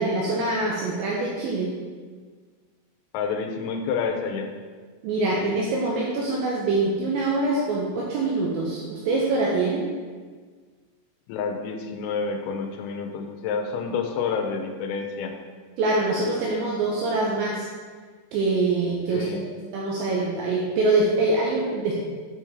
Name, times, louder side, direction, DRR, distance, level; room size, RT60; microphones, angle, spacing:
voice 1, 0.0-1.7 5.0-9.8 15.8-17.7 18.3-19.4 19.7-21.9, right 2 dB, 85° right, -3 dB, 2.6 m, -24 dB
voice 2, 3.1-4.5 11.3-15.4 19.1-19.5, left 5 dB, 90° left, 3 dB, 3.2 m, -29 dB
8.8 x 4.6 x 3.4 m, 1.5 s
omnidirectional pair, 5.9 m